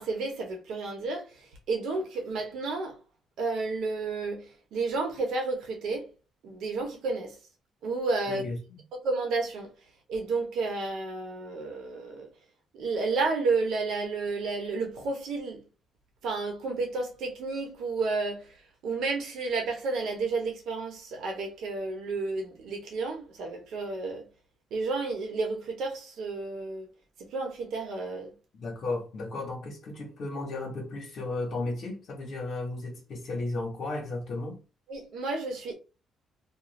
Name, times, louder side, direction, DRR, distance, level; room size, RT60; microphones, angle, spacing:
voice 1, 0.0-3.0 3.4-6.1 6.4-7.4 7.8-8.4 8.9-9.7 10.1-12.3 12.8-15.6 16.2-18.5 18.8-24.3 24.7-26.9 27.2-28.3 34.9-35.7, right 3 dB, 75° right, 1.0 m, -31 dB
voice 2, 8.3-8.6 28.5-34.6, left 2 dB, 65° left, 1.1 m, -34 dB
2.5 x 2.3 x 3.2 m
cardioid pair, 90°, 0 cm